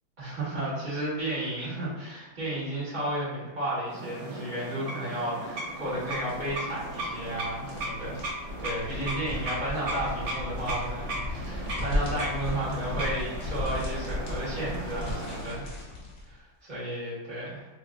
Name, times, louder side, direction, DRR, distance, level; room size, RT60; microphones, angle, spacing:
voice 1, 0.2-8.2 8.6-15.7 16.2-17.7, right 1 dB, 25° right, -8 dB, 1.6 m, -33 dB
sound 1, 3.9-15.7, right 1 dB, 60° right, 1.7 m, -37 dB
sound 2, 5.7-16.3, left 1 dB, 45° left, 1.0 m, -36 dB
4.2 x 3.2 x 2.5 m, 1.2 s
omnidirectional pair, 2.2 m